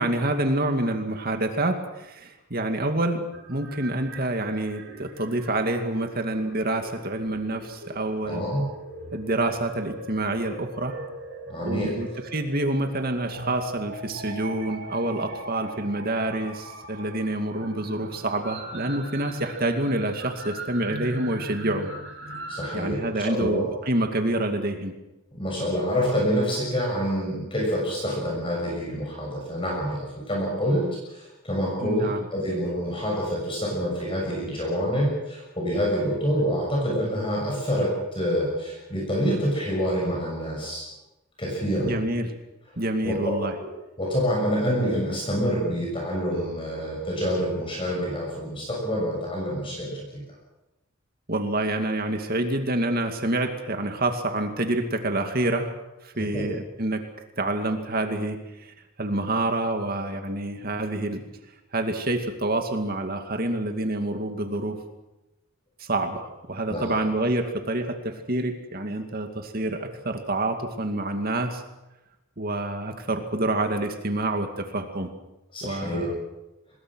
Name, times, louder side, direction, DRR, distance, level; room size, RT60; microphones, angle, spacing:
voice 1, 0.0-8.4 9.1-11.0 11.6-21.9 22.7-24.9 31.8-32.2 41.8-42.3 42.8-43.5 51.3-55.7 56.0-57.0 57.4-61.2 61.7-64.8 65.8-71.6 72.4-75.1 75.6-76.1, right 2 dB, 45° right, 5 dB, 2.3 m, -27 dB
sound 1, 3.3-22.8, right 2 dB, 65° right, 6.1 m, -40 dB
voice 2, 8.3-8.6 11.5-11.9 22.5-23.6 25.3-40.9 41.4-41.9 43.0-43.4 44.0-50.2 56.1-56.4 66.7-67.0 75.5-76.1, equal, 25° left, -2 dB, 6.6 m, -27 dB
25.0 x 21.0 x 6.3 m, 0.98 s
head